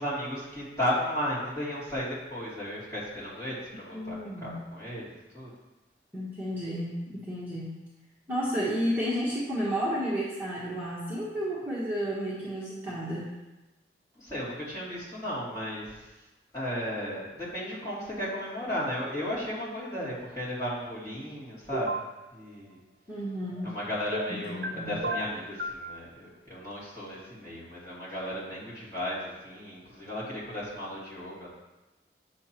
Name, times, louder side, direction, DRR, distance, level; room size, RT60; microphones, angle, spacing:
voice 1, 0.0-5.5 14.2-16.0 16.5-22.0 22.3-22.8 23.6-31.5, equal, 20° left, -10 dB, 2.8 m, -35 dB
voice 2, 3.9-4.7 6.1-7.8 8.3-13.3 23.1-23.7 24.3-24.9, equal, 10° right, -9 dB, 1.3 m, -32 dB
sound 1, 21.7-22.1 24.1-24.7 25.0-25.8, right 1 dB, 55° right, 0.7 m, -32 dB
8.7 x 6.6 x 3.0 m, 1.1 s
head